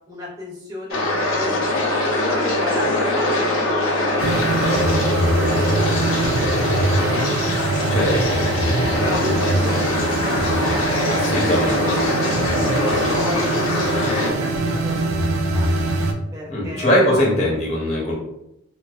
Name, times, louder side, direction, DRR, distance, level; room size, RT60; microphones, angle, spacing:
voice 1, 0.1-4.0 4.4-7.7 8.1-11.1 12.8-15.7 16.3-17.1, left 1 dB, 15° right, -4 dB, 0.4 m, -34 dB
sound 1, 0.9-14.3, left 1 dB, 90° left, 0.6 m, -22 dB
sound 2, 4.2-16.1, right 2 dB, 90° right, 0.3 m, -23 dB
voice 2, 11.1-12.1 16.5-18.1, left 1 dB, 35° left, -3 dB, 0.7 m, -21 dB
2.4 x 2.3 x 2.3 m, 0.84 s
head